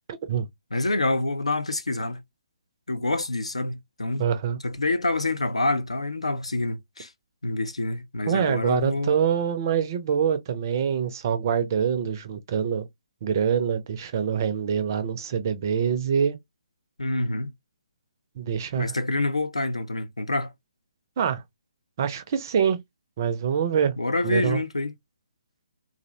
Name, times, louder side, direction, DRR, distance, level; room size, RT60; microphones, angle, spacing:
voice 1, 0.7-2.2 2.9-4.2 4.6-7.1 7.4-9.1 17.0-17.5 18.8-20.5 24.0-24.9, left 2 dB, 75° left, 0.4 m, -27 dB
voice 2, 4.2-4.6 8.3-12.9 13.2-16.4 18.4-18.9 21.2-21.4 22.0-22.8 23.2-24.0 24.2-24.6, right 7 dB, 35° right, 0.4 m, -25 dB
2.4 x 2.0 x 2.7 m
figure-of-eight pair, 135°, 3 cm